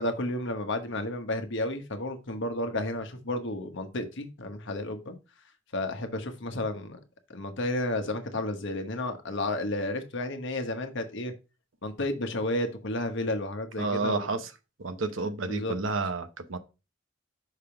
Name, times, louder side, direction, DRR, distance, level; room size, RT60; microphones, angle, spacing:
voice 1, 0.0-5.2 5.7-7.0 7.3-11.3 11.8-14.3 15.5-15.8, left 1 dB, 65° left, 1.1 m, -32 dB
voice 2, 13.8-14.4 14.8-16.6, right 3 dB, 75° right, 0.9 m, -30 dB
5.8 x 3.5 x 5.7 m
head